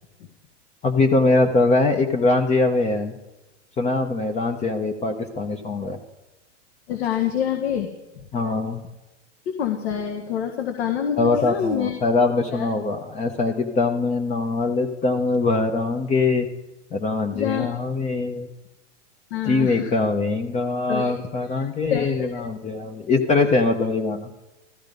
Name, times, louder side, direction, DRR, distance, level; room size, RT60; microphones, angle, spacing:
voice 1, 0.8-3.1 3.8-6.0 8.3-8.8 11.2-16.5 16.9-18.5 19.4-24.3, left 3 dB, 20° left, 5 dB, 1.0 m, -22 dB
voice 2, 6.9-7.9 9.5-11.9 12.5-12.7 17.3-17.7 19.3-19.9 20.9-21.3 21.5-21.6 21.9-22.4, left 8 dB, 60° left, 4 dB, 1.8 m, -26 dB
14.5 x 14.0 x 5.4 m, 1.0 s
hypercardioid pair, 120°, 36 cm